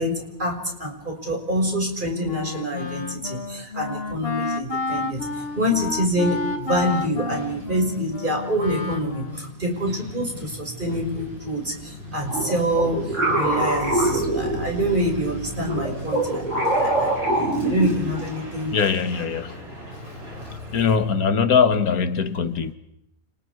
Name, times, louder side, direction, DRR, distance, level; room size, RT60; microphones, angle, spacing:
voice 1, 0.0-17.1 17.6-18.7, equal, 35° right, 1 dB, 6.1 m, -26 dB
Wind instrument woodwind instrument, 2.2-9.6, left 3 dB, 45° left, 1.5 m, -31 dB
Truck, 4.7-20.9, equal, 80° right, 8.2 m, -39 dB
sound 1, 12.3-15.0 15.6-18.3, right 1 dB, 55° right, 6.3 m, -24 dB
voice 2, 18.7-19.7 20.7-22.7, left 6 dB, 85° left, 10 dB, 1.8 m, -21 dB
30.0 x 28.5 x 4.9 m, 0.79 s
omnidirectional pair, 1.5 m